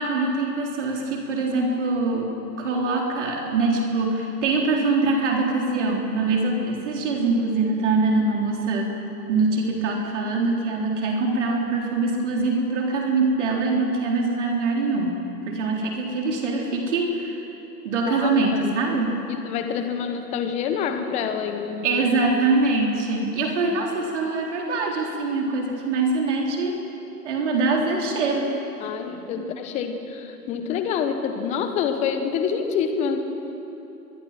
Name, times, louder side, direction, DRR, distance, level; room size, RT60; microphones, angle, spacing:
voice 1, 0.0-2.3 2.6-8.9 9.3-15.2 15.5-17.4 17.8-19.2 21.8-26.8 27.2-28.5 29.4-29.5, right 3 dB, 45° right, 0 dB, 4.0 m, -23 dB
voice 2, 18.1-18.7 19.3-22.0 28.8-33.3, left 7 dB, 15° left, 7 dB, 1.2 m, -27 dB
24.0 x 23.0 x 6.0 m, 3.0 s
figure-of-eight pair, 135°, 49 cm